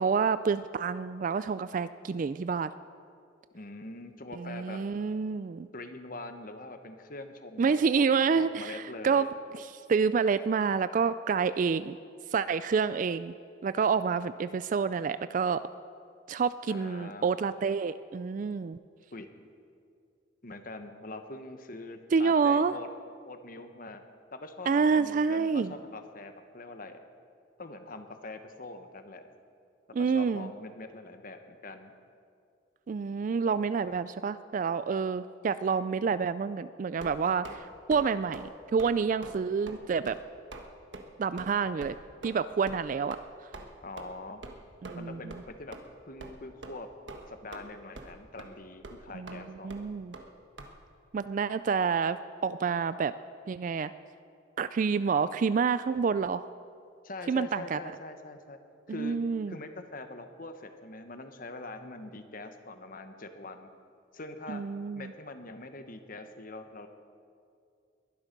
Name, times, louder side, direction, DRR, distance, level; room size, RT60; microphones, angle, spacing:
voice 1, 0.0-2.7 4.4-5.7 7.6-9.3 9.5-12.0 12.3-13.3 13.6-15.7 16.3-18.8 22.1-22.7 24.7-25.7 29.9-30.5 32.9-40.2 41.2-42.0 42.2-43.2 44.8-45.3 49.1-50.2 51.1-52.2 52.4-53.1 53.5-53.9 54.6-56.5 57.3-57.8 58.9-59.6 64.5-65.1, right 5 dB, 40° right, 14 dB, 0.3 m, -28 dB
voice 2, 3.5-4.8 5.7-8.0 8.3-9.3 16.7-17.3 19.1-19.3 20.4-22.9 23.2-24.0 24.3-27.0 27.6-29.3 30.0-31.9 43.8-44.4 45.0-45.8 46.1-46.9 47.3-49.7 57.0-58.6 58.9-59.2 59.5-63.7 64.1-64.6 64.9-66.9, left 2 dB, 45° left, 7 dB, 1.1 m, -43 dB
sound 1, 37.0-37.6 37.9-38.1 38.3-38.5 38.8-39.0 39.2-39.4 39.7-39.8 40.1-40.2 40.5-40.7 40.9-41.0 41.4-41.5 41.8-41.9 42.2-42.4 42.7-42.8 43.1-43.2 43.5-43.7 44.0-44.1 44.4-44.6 44.8-45.0 45.3-45.4 45.7-45.8 46.2-46.3 46.6-46.8 47.1-47.7 48.0-48.1 48.4-48.5 48.8-49.0 49.3-49.4 49.7-49.8 50.1-50.3 50.6-50.7, right 2 dB, 70° right, 1.4 m, -43 dB
21.5 x 12.0 x 5.3 m, 2.4 s
head